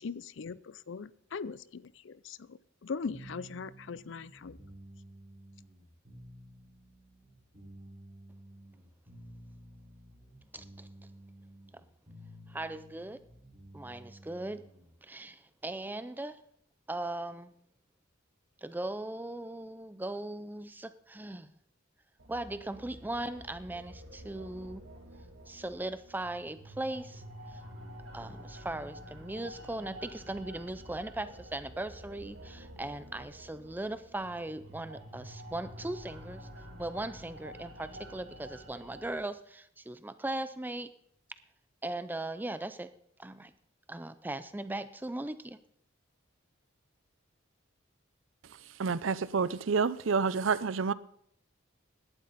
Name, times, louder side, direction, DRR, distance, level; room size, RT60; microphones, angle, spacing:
voice 1, 0.0-4.6, left 5 dB, 65° left, 0.5 m, -40 dB
sound 1, 3.1-14.9, right 1 dB, 35° right, 4.9 m, -53 dB
voice 2, 10.5-10.9 12.5-13.2 13.7-14.6 15.0-16.4 16.9-17.5 18.6-21.5 22.3-24.8 25.5-27.2 28.1-36.5 36.8-40.9 41.8-42.9 43.2-43.5 43.9-45.6, right 1 dB, 10° right, 0.4 m, -38 dB
sound 2, 22.2-39.2, equal, 85° right, 3.0 m, -49 dB
voice 3, 48.8-50.9, right 5 dB, 70° right, 0.5 m, -28 dB
17.0 x 11.5 x 4.1 m
head